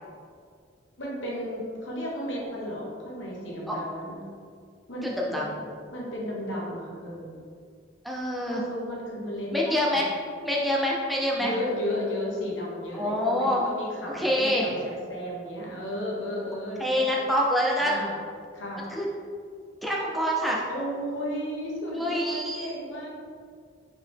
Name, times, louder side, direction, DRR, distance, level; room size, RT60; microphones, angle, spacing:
voice 1, 1.0-4.2 4.9-5.5 5.9-7.4 8.5-10.0 11.4-17.1 17.8-18.2 18.5-18.8 20.7-23.1, equal, 85° left, -4 dB, 1.1 m, -34 dB
voice 2, 5.0-5.5 8.0-8.6 9.5-10.1 10.4-11.5 13.0-13.7 14.1-14.7 16.8-18.0 18.9-19.1 19.8-20.6 21.9-22.7, equal, ahead, -4 dB, 0.5 m, -26 dB
4.8 x 3.3 x 3.4 m, 2.1 s
head